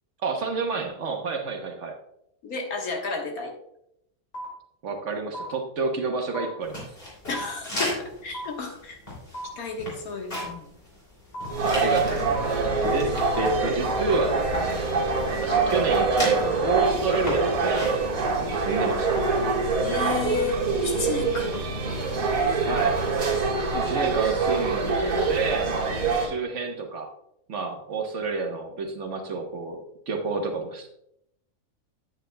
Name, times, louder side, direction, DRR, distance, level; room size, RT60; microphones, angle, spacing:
voice 1, 0.2-1.9 4.8-6.8 11.6-14.9 15.3-19.2 22.6-23.0 23.7-27.1 27.5-31.0, right 4 dB, 60° right, 4 dB, 1.3 m, -29 dB
voice 2, 2.4-3.5 7.3-9.0 9.6-10.7 15.4-15.6 19.8-21.5, left 4 dB, 90° left, 2 dB, 1.8 m, -32 dB
sound 1, 4.3-4.4 5.3-5.4 6.3-6.4 7.3-7.4 8.3-8.4 9.3-9.4 10.3-10.4 11.3-11.4 12.3-12.4 13.3-13.4, right 1 dB, 65° left, 3.1 m, -34 dB
sound 2, 6.6-24.9, left 1 dB, 40° left, 3.1 m, -39 dB
sound 3, 11.5-26.3, right 4 dB, 85° right, 2.1 m, -25 dB
9.1 x 8.9 x 2.2 m, 0.77 s
omnidirectional pair, 1.5 m